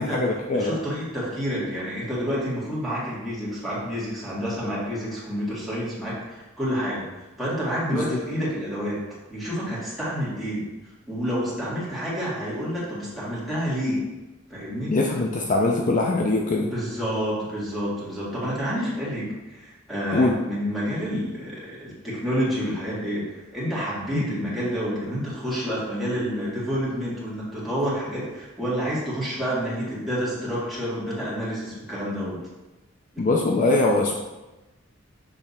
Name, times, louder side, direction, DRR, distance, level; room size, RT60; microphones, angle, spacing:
voice 1, 0.0-0.8 7.9-8.2 14.9-16.7 20.1-20.4 24.1-24.3 33.2-34.1, left 2 dB, 40° left, 1 dB, 0.5 m, -22 dB
voice 2, 0.5-7.1 7.4-9.0 9.3-10.6 11.1-14.0 14.5-14.9 16.6-32.4 33.1-33.2, equal, ahead, -9 dB, 2.0 m, -29 dB
6.8 x 3.3 x 4.2 m, 1.1 s
head